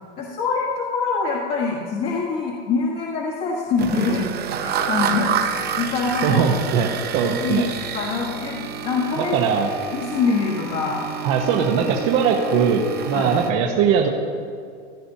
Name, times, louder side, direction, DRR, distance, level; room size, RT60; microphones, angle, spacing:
voice 1, 0.2-4.3 4.6-6.4 6.8-6.9 7.4-9.4 9.9-11.0 13.1-13.3, left 4 dB, 45° left, -4 dB, 1.5 m, -24 dB
sound 1, 3.8-13.5, right 7 dB, 30° right, 0.8 m, -29 dB
voice 2, 6.2-7.7 9.2-9.7 11.2-14.1, right 6 dB, 55° right, 1 dB, 1.1 m, -20 dB
16.0 x 10.0 x 2.8 m, 2.3 s
supercardioid pair, 120°, 32 cm